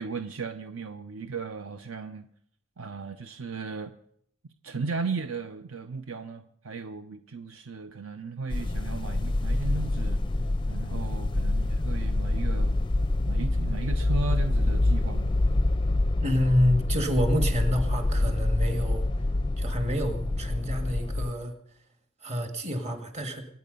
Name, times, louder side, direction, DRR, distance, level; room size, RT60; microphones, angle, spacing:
voice 1, 0.0-2.3 2.8-3.9 4.6-10.3 10.7-12.8 13.3-15.4, right 4 dB, 60° right, 0.7 m, -36 dB
sound 1, 8.5-21.3, left 2 dB, 20° left, 0.5 m, -26 dB
voice 2, 16.2-19.0 19.6-21.5 22.2-23.5, equal, 30° right, 1.9 m, -28 dB
24.5 x 9.3 x 5.4 m
head